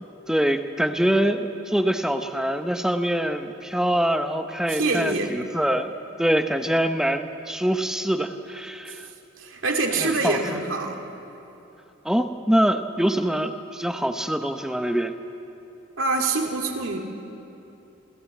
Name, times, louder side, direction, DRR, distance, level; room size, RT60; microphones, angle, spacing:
voice 1, 0.3-5.9 6.2-9.1 9.9-10.6 12.0-15.1, right 1 dB, 5° right, 7 dB, 0.7 m, -24 dB
voice 2, 4.7-5.4 8.9-9.0 9.4-11.0 16.0-17.0, right 3 dB, 80° right, 3 dB, 2.3 m, -25 dB
27.5 x 14.5 x 8.4 m, 3.0 s
head